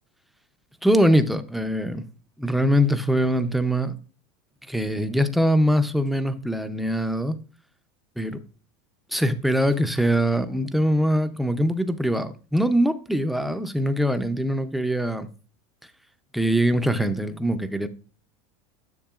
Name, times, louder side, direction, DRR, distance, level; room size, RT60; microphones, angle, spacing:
voice 1, 0.8-2.1 2.4-4.0 4.7-7.4 8.2-8.4 9.1-15.3 16.3-17.9, equal, ahead, 0.4 m, -22 dB
10.0 x 6.7 x 2.3 m
supercardioid pair, 145°, 17 cm